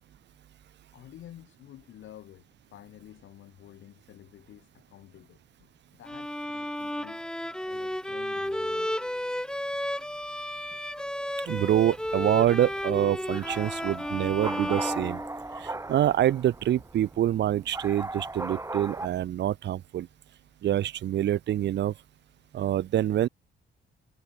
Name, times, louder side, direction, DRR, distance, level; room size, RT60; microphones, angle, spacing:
voice 1, 0.9-7.3 7.7-9.0 10.7-10.8, left 12 dB, 75° left, 4.4 m, -50 dB
Bowed string instrument, 6.1-15.8, left 1 dB, 5° left, 2.0 m, -33 dB
voice 2, 11.5-15.2 15.6-20.1 20.6-21.9 22.5-23.3, right 11 dB, 60° right, 0.7 m, -26 dB
sound 1, 11.6-19.1, right 2 dB, 15° right, 4.1 m, -38 dB
cardioid pair, 90°, 20 cm